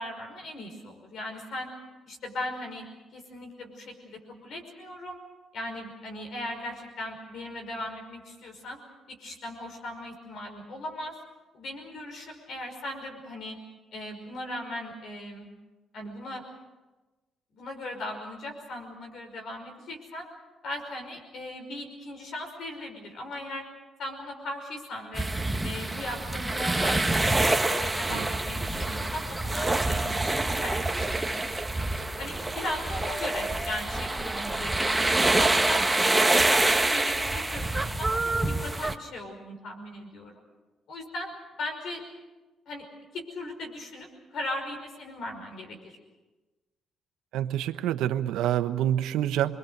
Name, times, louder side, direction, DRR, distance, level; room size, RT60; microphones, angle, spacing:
voice 1, 0.0-1.7 2.1-2.9 3.1-5.2 5.5-8.8 9.1-11.1 11.5-13.6 13.9-15.5 15.9-16.4 17.5-20.3 20.6-23.6 24.0-25.3 25.6-31.5 32.2-35.8 36.1-40.3 40.9-41.3 41.6-42.0 42.7-42.8 43.1-46.0, left 1 dB, 70° left, 3 dB, 5.6 m, -38 dB
sound 1, 25.1-39.0, right 2 dB, 10° right, 1.3 m, -26 dB
voice 2, 47.3-49.6, right 11 dB, 90° right, 8 dB, 1.0 m, -27 dB
28.0 x 22.5 x 6.7 m, 1.2 s
cardioid pair, 90°, 0 cm